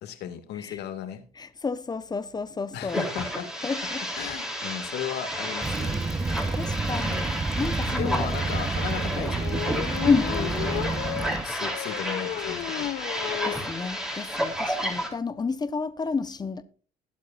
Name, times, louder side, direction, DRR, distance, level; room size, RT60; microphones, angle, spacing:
voice 1, 0.0-1.2 2.7-3.5 4.2-6.0 8.0-9.6 10.3-10.9 11.2-12.9, left 9 dB, 80° left, 2.2 m, -35 dB
voice 2, 1.4-3.0 3.6-4.0 6.2-8.3 10.0-10.3 13.4-16.6, left 4 dB, 25° left, 1.1 m, -30 dB
sound 1, 2.9-15.1, equal, 5° right, 3.5 m, -32 dB
Waves surf / Splash splatter / Trickle dribble, 5.6-11.4, right 3 dB, 20° right, 0.7 m, -29 dB
sound 2, 9.4-13.7 14.1-14.2 14.4-14.5 14.7-15.0, left 14 dB, 60° left, 0.5 m, -33 dB
20.5 x 8.4 x 2.6 m
cardioid pair, 110°, 17 cm